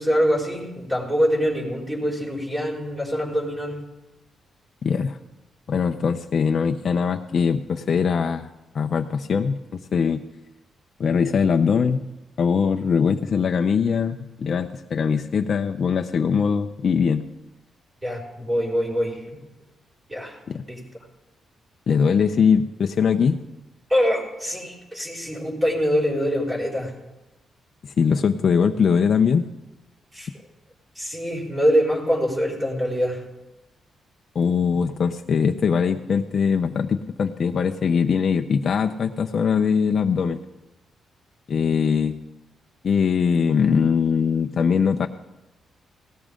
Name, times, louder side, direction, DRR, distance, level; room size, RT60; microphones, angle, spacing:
voice 1, 0.0-3.8 18.0-19.2 20.1-20.4 20.7-20.8 23.9-27.0 30.1-30.3 31.0-33.2, equal, 15° right, -4 dB, 5.2 m, -24 dB
voice 2, 4.8-5.2 5.7-8.5 8.7-10.2 11.0-12.0 12.4-17.3 20.5-20.6 21.9-23.4 27.8-29.4 34.3-40.4 41.5-42.2 42.8-45.1, left 6 dB, 55° left, 5 dB, 0.7 m, -21 dB
17.5 x 13.5 x 3.8 m, 1.0 s
cardioid pair, 80°, 0 cm